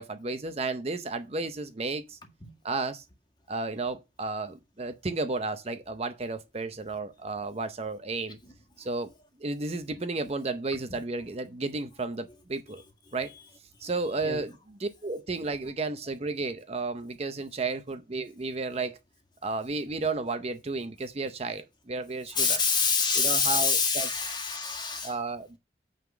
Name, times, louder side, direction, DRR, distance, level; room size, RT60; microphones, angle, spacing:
voice 1, 0.0-2.2 2.6-3.0 3.5-8.4 8.8-9.1 9.4-12.8 13.1-13.3 13.8-19.0 19.4-22.6 23.1-24.3 25.0-25.6, right 3 dB, 35° right, 0.6 m, -33 dB
voice 2, 22.3-25.1, left 5 dB, 25° left, 1.8 m, -26 dB
9.0 x 3.8 x 6.0 m
head